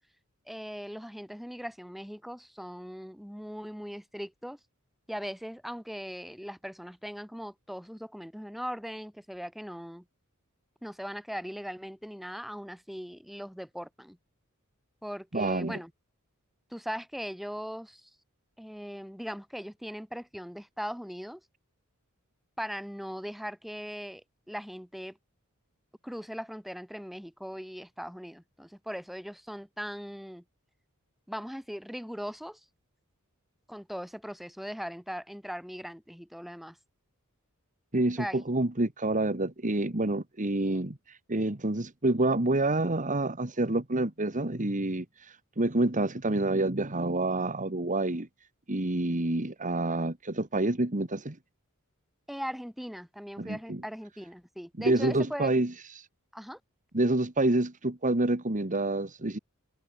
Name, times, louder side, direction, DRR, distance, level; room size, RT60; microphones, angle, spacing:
voice 1, 0.5-4.6 5.1-10.1 10.8-14.2 15.0-15.9 16.7-18.1 18.6-21.4 22.6-25.2 26.0-30.4 31.3-32.6 33.7-36.8 38.2-38.4 40.6-40.8 52.3-55.5 56.3-56.6, equal, ahead, 5.0 m, -39 dB
voice 2, 15.3-15.8 37.9-48.3 48.7-51.4 53.4-53.8 54.8-56.1 56.9-59.4, right 2 dB, 35° right, 1.9 m, -28 dB
head